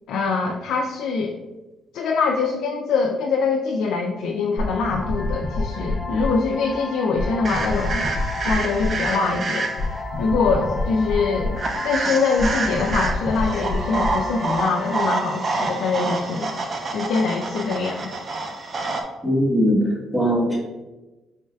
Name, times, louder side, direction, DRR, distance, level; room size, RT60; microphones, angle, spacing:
voice 1, 0.1-1.3 1.9-8.0 8.4-9.7 10.2-11.6 11.8-16.5 16.9-18.1, left 4 dB, 80° left, 0 dB, 0.3 m, -23 dB
sound 1, 4.6-15.0, left 2 dB, 30° left, 0.8 m, -28 dB
sound 2, 7.5-10.0 11.6-19.0, right 3 dB, 45° right, 0.5 m, -28 dB
voice 2, 19.2-20.6, equal, 10° right, -5 dB, 1.3 m, -20 dB
4.4 x 3.2 x 2.3 m, 1.1 s
cardioid pair, 90°, 0 cm